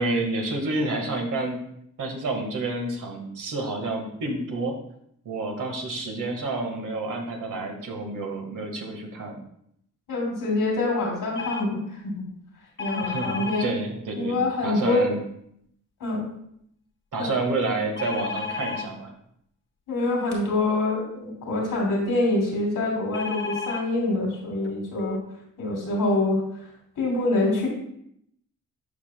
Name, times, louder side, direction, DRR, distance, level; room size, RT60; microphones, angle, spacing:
voice 1, 0.0-1.6 2.0-4.8 5.2-9.4 13.0-15.2 17.1-19.1, right 2 dB, 75° right, 2 dB, 1.6 m, -29 dB
voice 2, 10.1-12.2 12.8-13.7 14.2-15.1 16.0-16.3 17.2-17.3 19.9-25.2 25.6-26.4 27.0-27.7, left 2 dB, 90° left, -3 dB, 3.0 m, -25 dB
sound 1, 11.4-11.7 12.8-13.7 18.0-18.9 23.1-23.8 24.6-24.7 25.0-25.2, left 5 dB, 40° left, 0.8 m, -32 dB
12.0 x 5.2 x 2.2 m, 0.73 s
cardioid pair, 75°, 31 cm